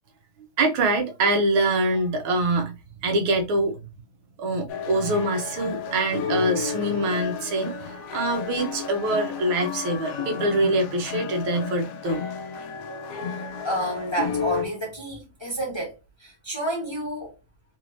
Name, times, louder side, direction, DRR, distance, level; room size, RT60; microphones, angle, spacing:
voice 1, 0.6-2.7 3.0-3.8 4.4-12.2, right 2 dB, 80° right, 1.7 m, -24 dB
sound 1, 4.7-14.6, left 6 dB, 90° left, 0.7 m, -32 dB
voice 2, 13.6-15.9 16.2-17.3, right 1 dB, 15° left, 1.0 m, -29 dB
3.9 x 3.1 x 2.6 m
omnidirectional pair, 2.2 m